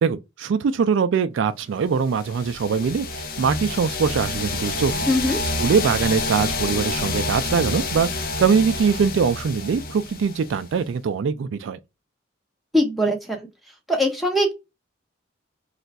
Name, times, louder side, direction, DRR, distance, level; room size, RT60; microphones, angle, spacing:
voice 1, 0.0-5.1 5.6-11.8, right 6 dB, 70° right, 0.3 m, -22 dB
sound 1, 2.0-10.8, left 3 dB, 45° left, 0.5 m, -28 dB
voice 2, 5.1-5.4 12.7-13.5 13.9-14.5, equal, ahead, 0.7 m, -21 dB
2.4 x 2.2 x 3.9 m
head